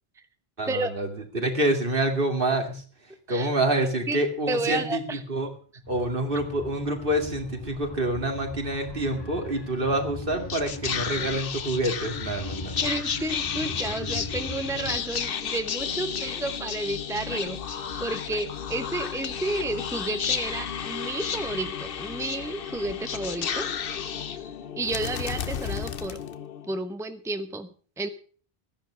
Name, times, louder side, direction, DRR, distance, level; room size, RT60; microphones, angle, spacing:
voice 1, 0.6-1.1 1.3-2.8 3.3-5.5 5.9-12.9, right 1 dB, 60° right, 4 dB, 2.6 m, -27 dB
voice 2, 4.5-5.2 12.8-23.7 24.3-24.4 24.8-26.2 26.7-27.7 28.0-28.1, right 2 dB, 5° right, 8 dB, 1.0 m, -31 dB
sound 1, 5.8-15.0, left 2 dB, 25° left, 1.0 m, -39 dB
Whispering, 10.2-26.8, left 7 dB, 65° left, 1.0 m, -32 dB
15.0 x 10.0 x 6.2 m, 0.42 s
omnidirectional pair, 1.0 m